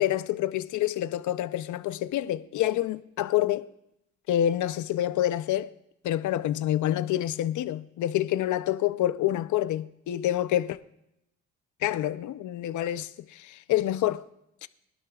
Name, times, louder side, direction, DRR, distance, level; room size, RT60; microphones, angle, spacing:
voice 1, 0.0-3.7 4.3-5.7 6.0-10.8 11.8-14.2 14.6-14.7, left 12 dB, 75° left, 0.6 m, -27 dB
22.0 x 11.5 x 2.4 m
cardioid pair, 90°, 30 cm